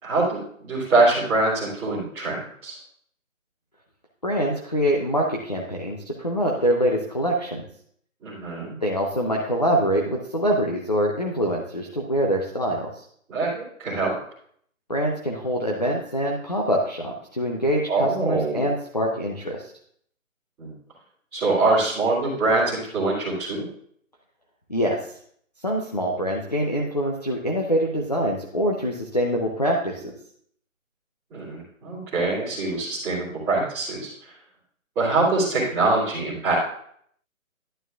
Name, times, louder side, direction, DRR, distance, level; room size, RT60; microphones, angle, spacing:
voice 1, 0.0-2.8 8.2-8.7 13.3-14.1 17.9-18.6 20.6-20.7 21.3-23.7 31.3-34.1 35.0-36.5, right 3 dB, 5° right, -14 dB, 2.1 m, -24 dB
voice 2, 4.2-7.6 8.8-12.9 14.9-19.7 24.7-25.1 25.6-30.2, equal, 30° left, -1 dB, 0.6 m, -24 dB
11.0 x 8.3 x 2.4 m, 0.63 s
hypercardioid pair, 175°, 41 cm